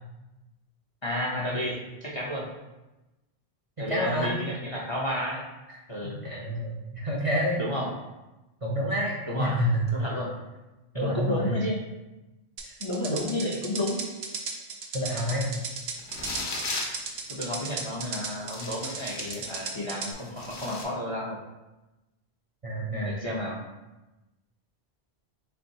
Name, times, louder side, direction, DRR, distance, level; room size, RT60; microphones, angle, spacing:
voice 1, 1.0-2.5 3.8-5.4 5.9-6.2 7.6-7.9 9.3-9.6 9.9-10.3 10.9-11.8 12.8-14.0 17.3-21.4 22.9-23.6, left 1 dB, 35° left, -4 dB, 0.5 m, -31 dB
voice 2, 3.8-4.3 6.0-7.6 8.6-9.8 10.9-11.5 12.6-12.7 14.9-15.4 22.6-23.1, equal, 40° right, -5 dB, 0.5 m, -28 dB
sound 1, 12.6-20.1, right 5 dB, 75° right, 0.9 m, -36 dB
sound 2, 16.0-17.0 17.8-17.9 18.5-19.7 20.1-20.8, left 2 dB, 80° left, 1.1 m, -35 dB
4.3 x 3.7 x 2.6 m, 1.0 s
omnidirectional pair, 1.1 m